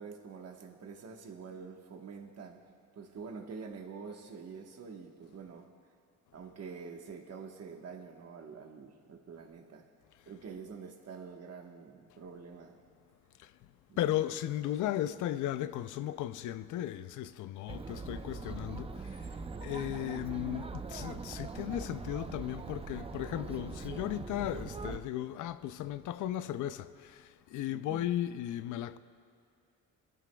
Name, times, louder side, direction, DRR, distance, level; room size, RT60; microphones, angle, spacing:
voice 1, 0.0-2.6 2.9-5.7 6.3-9.9 10.3-12.8 13.9-14.2 19.5-20.0 27.7-28.1, right 5 dB, 55° right, 1.4 m, -47 dB
voice 2, 14.0-19.3 19.6-29.0, left 12 dB, 80° left, 0.5 m, -36 dB
Chatter, 17.7-25.0, right 4 dB, 20° right, 0.6 m, -42 dB
21.5 x 15.0 x 2.3 m
cardioid pair, 90°, 30 cm